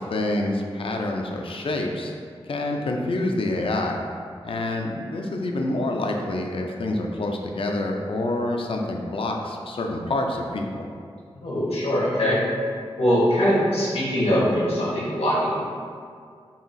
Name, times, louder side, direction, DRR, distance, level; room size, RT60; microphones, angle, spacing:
voice 1, 0.0-2.1 2.5-4.0 4.4-10.9, left 2 dB, 60° left, 2 dB, 0.4 m, -27 dB
voice 2, 11.4-12.4 13.0-15.6, equal, 85° left, -7 dB, 1.1 m, -22 dB
5.6 x 2.4 x 2.6 m, 2.2 s
wide cardioid pair, 100°, 10 cm